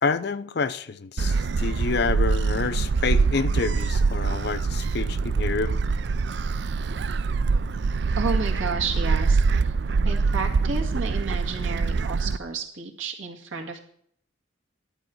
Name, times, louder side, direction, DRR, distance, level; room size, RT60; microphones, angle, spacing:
voice 1, 0.0-5.8, left 4 dB, 50° left, 0.5 m, -28 dB
Gull seagull, 1.2-12.4, right 4 dB, 55° right, 0.4 m, -24 dB
voice 2, 8.2-9.7 10.0-13.8, right 4 dB, 75° right, 1.9 m, -31 dB
11.0 x 4.9 x 7.5 m
head